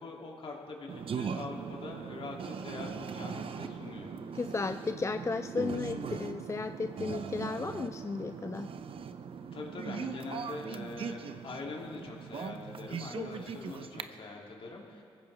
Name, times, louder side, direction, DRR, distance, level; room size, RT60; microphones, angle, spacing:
voice 1, 0.0-4.2 9.5-15.0, left 3 dB, 55° left, -1 dB, 2.8 m, -43 dB
sound 1, 0.9-14.0, right 6 dB, 60° right, 0.8 m, -40 dB
voice 2, 4.3-8.7 13.1-13.3, left 4 dB, 25° left, 10 dB, 0.4 m, -34 dB
23.0 x 15.5 x 3.5 m, 2.5 s
supercardioid pair, 50°, 11 cm